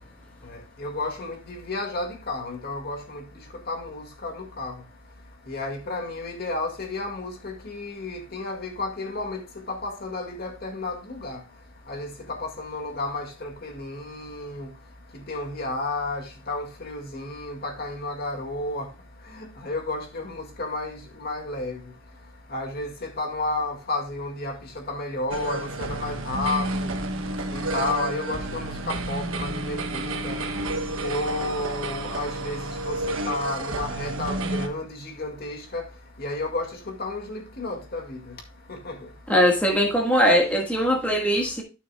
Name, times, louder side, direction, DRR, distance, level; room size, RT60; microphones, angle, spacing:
voice 1, 0.8-3.2 3.7-4.7 5.5-9.4 9.7-11.4 11.9-14.7 15.3-18.9 19.3-21.8 22.5-24.6 24.9-26.9 27.5-30.4 31.0-35.8 36.2-38.2 38.7-38.9, left 2 dB, 50° left, 2.0 m, -32 dB
sound 1, 25.3-34.7, right 2 dB, 80° right, 1.2 m, -30 dB
voice 2, 39.3-41.6, equal, 5° left, 1.5 m, -20 dB
13.0 x 6.3 x 2.2 m
head